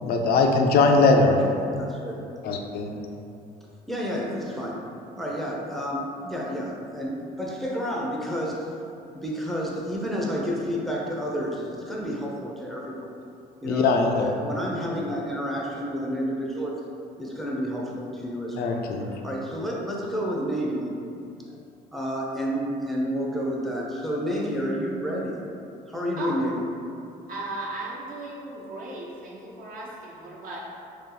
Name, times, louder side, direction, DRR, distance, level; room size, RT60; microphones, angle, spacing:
voice 1, 0.0-1.4 2.4-3.0 13.6-14.3 18.6-19.2, left 3 dB, 65° left, 3 dB, 0.4 m, -21 dB
voice 2, 1.8-2.2 3.9-4.8 5.2-8.7 9.1-13.1 13.6-16.8 17.2-18.8 19.2-21.0 21.5-21.6 21.9-25.4 25.9-26.7, equal, ahead, -3 dB, 0.6 m, -30 dB
voice 3, 27.3-30.6, right 2 dB, 55° right, -4 dB, 0.9 m, -36 dB
3.2 x 2.9 x 3.8 m, 2.6 s
cardioid pair, 110°, 17 cm